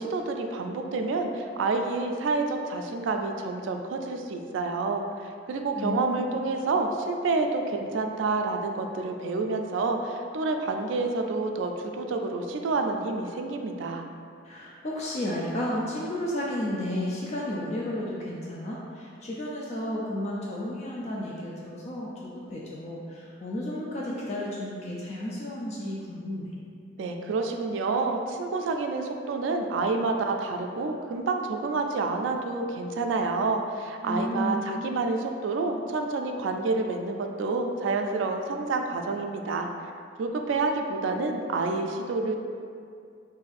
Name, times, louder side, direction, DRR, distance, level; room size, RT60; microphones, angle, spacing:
voice 1, 0.0-14.0 27.0-39.7 40.2-42.4, right 3 dB, 75° right, 4 dB, 0.3 m, -28 dB
voice 2, 5.8-6.3 14.4-26.5 34.0-34.6, left 1 dB, 35° left, -4 dB, 0.4 m, -32 dB
4.0 x 2.6 x 2.4 m, 2.3 s
head